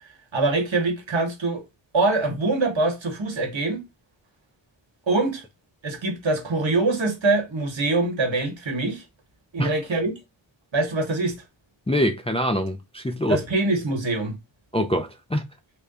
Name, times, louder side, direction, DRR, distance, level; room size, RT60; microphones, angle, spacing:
voice 1, 0.3-1.6 1.9-3.8 5.1-5.4 5.8-9.0 9.5-10.2 10.7-11.4 13.3-14.4, right 2 dB, 70° right, 1.1 m, -24 dB
voice 2, 11.9-13.4 14.7-15.4, equal, 15° left, 0.4 m, -24 dB
3.3 x 2.3 x 3.8 m
wide cardioid pair, 70°, 48 cm